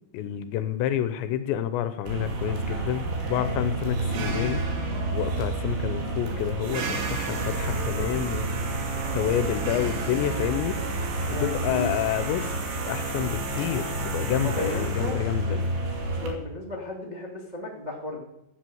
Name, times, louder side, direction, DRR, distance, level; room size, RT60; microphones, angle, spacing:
voice 1, 0.1-4.6 5.1-8.6 9.1-10.8 11.3-12.6 12.9-15.6, left 10 dB, 80° left, 11 dB, 2.8 m, -29 dB
sound 1, 2.1-16.3, right 2 dB, 80° right, 4.9 m, -29 dB
voice 2, 11.3-12.0 13.5-13.6 14.4-15.6 16.2-18.2, left 1 dB, 45° right, -2 dB, 0.5 m, -34 dB
15.5 x 8.4 x 7.8 m, 0.84 s
omnidirectional pair, 5.6 m